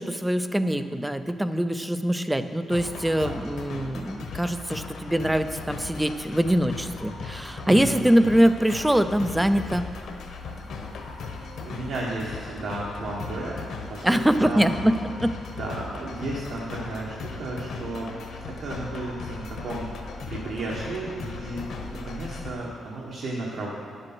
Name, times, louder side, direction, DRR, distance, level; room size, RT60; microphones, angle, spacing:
voice 1, 0.0-9.9 14.0-15.3, right 1 dB, 5° right, 10 dB, 0.4 m, -23 dB
sound 1, 2.7-22.5, left 4 dB, 65° left, 1.1 m, -37 dB
voice 2, 7.6-8.0 11.2-14.7 15.5-18.1 18.6-19.9 20.3-21.6 21.9-23.7, right 2 dB, 65° right, -4 dB, 1.5 m, -33 dB
10.0 x 7.7 x 6.1 m, 2.2 s
cardioid pair, 160°, 0 cm